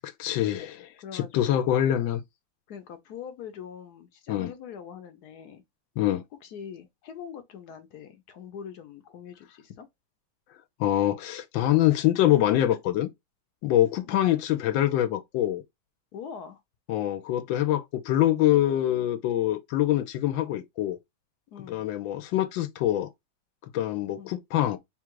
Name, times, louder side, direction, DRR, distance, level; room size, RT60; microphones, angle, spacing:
voice 1, 0.0-2.2 4.3-4.5 6.0-6.2 10.8-13.1 13.6-15.6 16.9-21.0 21.7-23.1 23.6-24.8, left 13 dB, 85° left, 1.3 m, -25 dB
voice 2, 1.0-1.6 2.7-5.6 6.4-9.9 14.0-14.3 16.1-16.6 21.5-21.9 24.2-24.3, left 7 dB, 65° left, 1.1 m, -43 dB
3.7 x 2.4 x 4.5 m
omnidirectional pair, 2.1 m